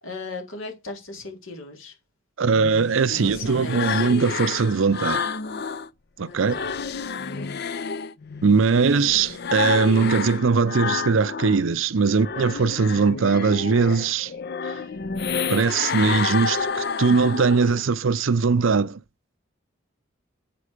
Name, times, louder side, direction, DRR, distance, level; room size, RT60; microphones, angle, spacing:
voice 1, 0.0-2.0 3.1-4.1 6.3-6.7 7.3-7.5, left 2 dB, 80° left, 3.7 m, -37 dB
voice 2, 2.4-5.2 6.2-6.6 8.4-14.3 14.6-14.7 15.5-19.0, right 5 dB, 70° right, 0.6 m, -20 dB
sound 1, 2.5-5.9 6.3-11.6 12.0-17.9, left 5 dB, 50° left, 0.5 m, -30 dB
8.4 x 5.4 x 5.0 m
head